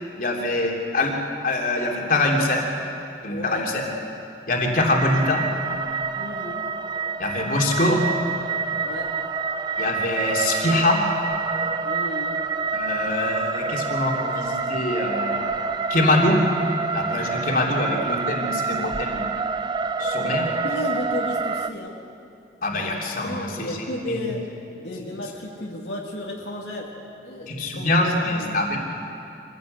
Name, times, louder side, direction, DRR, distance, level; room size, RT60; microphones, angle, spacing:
voice 1, 0.2-1.1 1.4-2.7 3.2-3.7 4.5-5.4 7.2-8.0 9.8-11.0 12.7-16.4 16.9-19.3 20.0-20.5 22.6-23.7 24.1-24.2 27.5-28.8, left 2 dB, 55° left, 0 dB, 3.1 m, -24 dB
voice 2, 3.3-3.7 6.1-6.7 8.8-9.1 11.8-12.4 20.3-20.4 20.6-22.0 23.2-24.4 24.8-26.9 27.2-28.6, left 1 dB, 80° left, -2 dB, 2.4 m, -33 dB
sound 1, 4.8-21.7, right 4 dB, 25° right, 0.5 m, -27 dB
25.0 x 16.0 x 8.1 m, 2.6 s
head